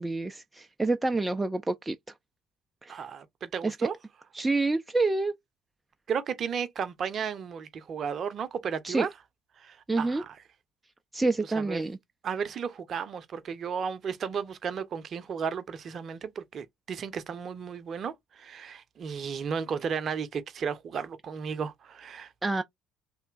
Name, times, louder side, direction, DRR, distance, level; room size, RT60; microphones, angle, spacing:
voice 1, 0.0-2.0 2.8-3.1 3.6-3.8 4.3-5.3 8.8-9.1 9.9-10.2 11.1-12.0 22.4-22.6, right 3 dB, 15° right, 0.4 m, -28 dB
voice 2, 2.9-3.9 6.1-9.1 9.6-10.3 11.6-11.8 12.2-22.3, right 6 dB, 45° right, 0.6 m, -34 dB
3.2 x 2.9 x 2.4 m
figure-of-eight pair, 55°, 0 cm